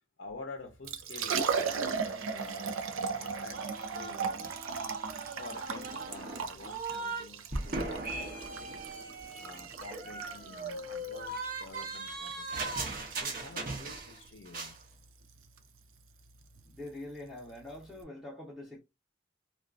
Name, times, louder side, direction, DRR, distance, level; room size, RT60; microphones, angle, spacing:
voice 1, 0.2-2.8 3.2-3.6 3.9-4.6 5.4-8.3 9.4-12.5 13.2-14.8, left 3 dB, 60° left, 0.5 m, -48 dB
Liquid, 0.7-18.0, right 6 dB, 90° right, 0.5 m, -38 dB
sound 1, 3.5-7.3 7.5-14.2 14.5-14.8, right 2 dB, 45° right, 0.7 m, -39 dB
voice 2, 16.6-18.8, left 1 dB, ahead, 0.6 m, -44 dB
2.4 x 2.3 x 2.3 m
head